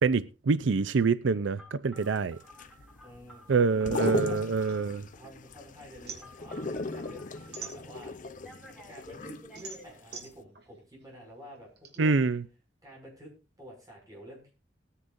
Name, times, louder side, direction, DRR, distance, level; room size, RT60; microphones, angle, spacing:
voice 1, 0.0-2.4 3.5-5.0 12.0-12.4, right 4 dB, 85° right, 0.5 m, -26 dB
Telephone, 1.6-4.9 6.2-7.7 8.2-9.8, equal, 5° right, 4.0 m, -52 dB
sound 1, 2.0-9.9 10.2-10.3, left 3 dB, 45° left, 0.7 m, -37 dB
voice 2, 3.0-4.4 5.1-8.4 8.9-12.3 12.8-13.3 13.6-14.5, equal, 20° right, 6.3 m, -49 dB
sound 2, 4.0-5.5 5.8-8.3 8.8-12.0, right 5 dB, 60° right, 2.7 m, -46 dB
20.0 x 9.9 x 2.6 m
head